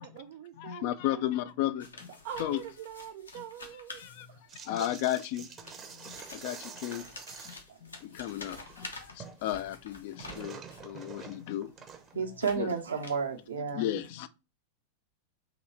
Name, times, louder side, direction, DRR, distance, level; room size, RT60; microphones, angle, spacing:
voice 1, 0.0-1.3 2.2-4.4 4.8-4.9, right 9 dB, 50° right, 0.4 m, -44 dB
voice 2, 0.6-2.1 2.4-2.6 3.3-3.4 4.0-4.3 4.6-7.1 7.4-7.5 7.8-11.7 12.6-12.7 13.7-14.3, left 13 dB, 50° left, 0.4 m, -34 dB
sound 1, 1.8-4.7 5.4-11.0 11.6-13.5, left 3 dB, 75° left, 1.0 m, -48 dB
sound 2, 4.5-7.7 8.0-9.4 9.7-12.2, right 6 dB, 25° right, 0.8 m, -47 dB
voice 3, 12.1-14.0, right 5 dB, 70° right, 1.0 m, -32 dB
4.0 x 3.1 x 4.3 m
figure-of-eight pair, 90°, 0 cm